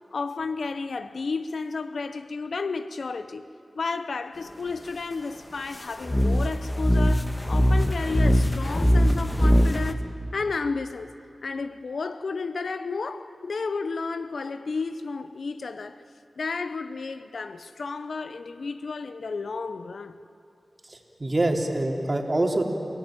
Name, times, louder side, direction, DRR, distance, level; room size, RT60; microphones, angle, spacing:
voice 1, 0.1-3.5 3.7-11.1 11.4-16.0 16.4-20.2, left 4 dB, 85° left, 0.8 m, -32 dB
sound 1, 6.0-9.9, equal, 15° left, 1.6 m, -21 dB
voice 2, 20.9-22.7, right 1 dB, 40° right, 3.4 m, -25 dB
29.5 x 17.5 x 9.0 m
cardioid pair, 40°, 0 cm